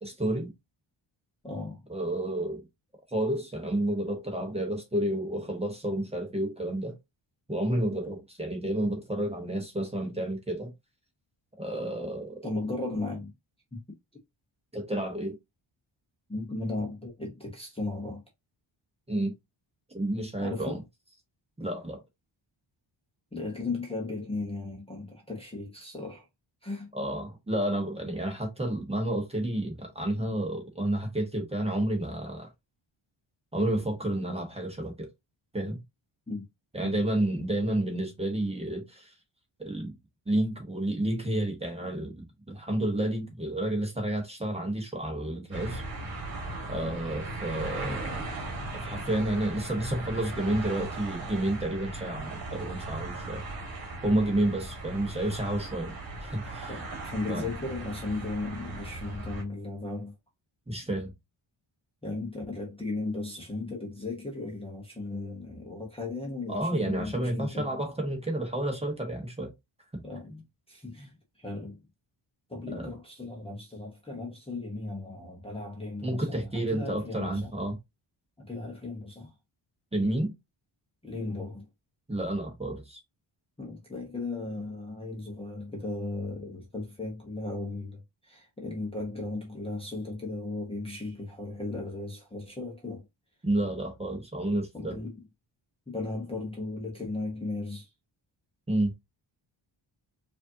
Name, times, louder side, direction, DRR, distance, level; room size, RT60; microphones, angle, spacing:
voice 1, 0.0-0.5 1.9-2.6 3.1-6.9 7.5-10.7 11.5-12.5 14.7-15.3 19.1-19.3 19.9-20.8 21.6-22.0 26.9-32.5 33.5-35.1 35.5-35.8 36.7-39.1 39.6-39.9 40.3-45.8 46.7-48.2 48.7-53.4 54.0-56.7 57.3-57.5 60.7-61.1 66.5-69.5 69.9-70.0 72.7-72.9 76.0-77.8 79.9-80.3 82.1-83.0 93.4-95.0 98.7-98.9, right 1 dB, 10° right, 1.0 m, -30 dB
voice 2, 1.4-1.8 12.4-13.3 13.7-13.8 16.3-18.2 20.4-20.8 23.3-26.3 26.6-26.9 36.3-36.4 36.8-36.9 56.7-60.1 62.0-67.7 70.0-71.8 72.5-77.5 78.4-79.3 81.0-81.7 83.6-93.1 94.7-95.3 95.9-97.9, left 2 dB, 10° left, 0.9 m, -36 dB
sound 1, 45.5-59.4, right 2 dB, 45° right, 1.6 m, -38 dB
4.9 x 2.7 x 2.7 m
wide cardioid pair, 175°, 49 cm